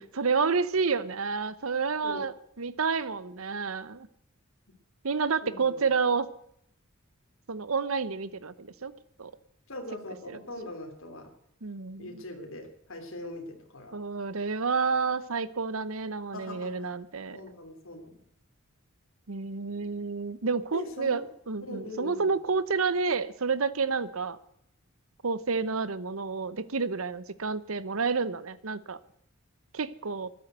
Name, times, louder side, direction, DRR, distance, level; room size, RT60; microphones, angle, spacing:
voice 1, 0.2-4.1 5.0-6.3 7.5-8.9 9.2-9.3 10.3-10.4 11.6-12.2 13.9-17.4 19.3-24.4 25.2-29.0 29.7-30.3, right 5 dB, 70° right, 17 dB, 0.9 m, -29 dB
voice 2, 5.4-5.8 9.7-11.3 12.0-14.0 16.3-16.9 17.3-18.1 20.7-21.3 21.6-22.3, left 1 dB, 65° left, 3 dB, 3.2 m, -41 dB
13.0 x 10.5 x 8.0 m, 0.73 s
head